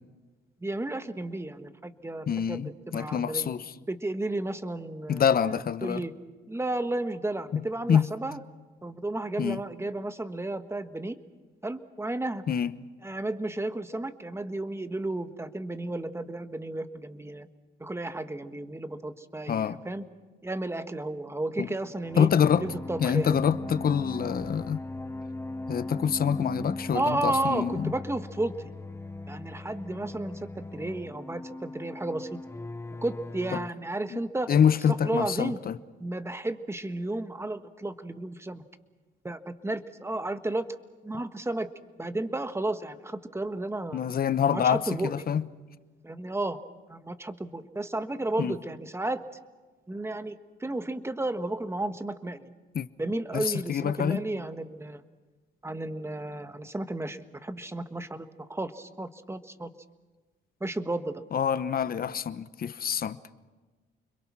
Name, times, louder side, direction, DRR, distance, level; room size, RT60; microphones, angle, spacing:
voice 1, 0.6-3.5 3.9-6.1 6.5-8.4 8.8-11.2 11.6-12.4 13.0-17.5 17.8-20.0 20.4-22.3 22.6-23.4 26.9-28.7 29.3-32.4 33.0-34.5 34.9-35.6 36.0-38.6 39.2-40.7 41.0-41.7 42.0-44.0 44.5-45.1 46.0-46.6 46.9-49.2 49.9-52.5 53.0-55.0 55.6-59.7 60.6-61.2, right 2 dB, 15° right, 1.5 m, -33 dB
voice 2, 2.3-3.6 5.1-6.0 7.5-7.6 7.9-8.1 9.4-9.6 12.5-12.7 19.5-19.8 21.6-21.7 22.2-22.6 23.0-24.8 25.7-27.9 33.5-33.6 34.1-34.2 34.5-35.8 43.9-45.4 48.4-48.5 52.7-52.9 53.3-54.2 61.3-63.2, left 8 dB, 50° left, 1.0 m, -26 dB
sound 1, 22.0-33.7, left 2 dB, 15° left, 0.8 m, -38 dB
30.0 x 22.5 x 6.1 m
cardioid pair, 90°, 20 cm